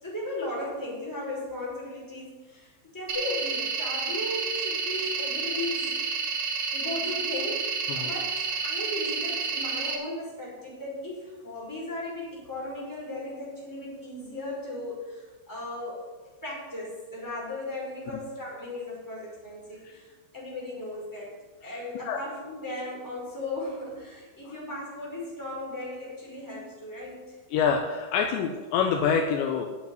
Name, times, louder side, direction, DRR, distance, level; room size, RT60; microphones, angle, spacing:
voice 1, 0.0-5.9 6.7-16.1 16.4-21.3 21.6-27.3, left 1 dB, 5° left, -4 dB, 4.7 m, -36 dB
sound 1, 3.1-9.9, right 5 dB, 60° right, 1.7 m, -30 dB
voice 2, 27.5-29.7, left 6 dB, 75° left, 3 dB, 2.9 m, -26 dB
10.5 x 8.1 x 9.3 m, 1.3 s
omnidirectional pair, 5.6 m